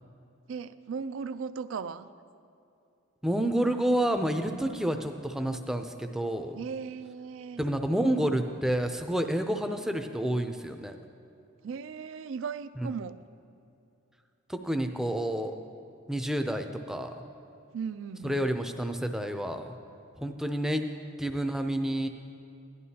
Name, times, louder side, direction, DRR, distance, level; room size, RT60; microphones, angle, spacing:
voice 1, 0.5-2.1 6.5-7.6 11.6-13.2 17.7-18.4, right 6 dB, 70° right, 13 dB, 0.3 m, -37 dB
voice 2, 3.2-6.6 7.6-11.0 14.5-15.5 16.1-17.1 18.2-19.8 20.2-20.8 21.2-22.1, right 1 dB, ahead, 5 dB, 0.4 m, -29 dB
16.0 x 11.0 x 2.8 m, 2.6 s
head